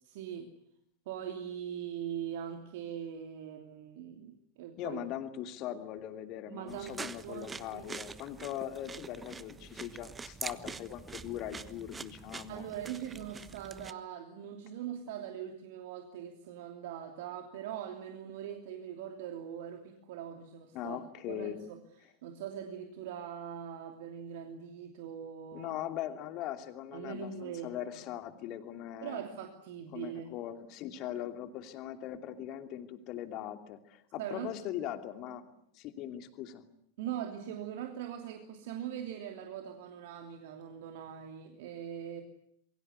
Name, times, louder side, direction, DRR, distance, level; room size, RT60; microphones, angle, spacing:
voice 1, 0.0-0.5 1.1-5.0 6.5-7.8 12.5-21.0 21.3-25.8 26.9-28.0 29.0-30.3 34.2-34.5 37.0-42.2, right 9 dB, 50° right, 5 dB, 2.9 m, -41 dB
voice 2, 4.8-12.7 20.7-21.7 25.5-29.2 29.9-35.5 35.7-36.7, left 11 dB, 40° left, 8 dB, 2.8 m, -40 dB
sound 1, 6.7-13.9, right 4 dB, 15° right, 1.2 m, -45 dB
27.5 x 23.0 x 8.2 m, 0.71 s
figure-of-eight pair, 90°, 0 cm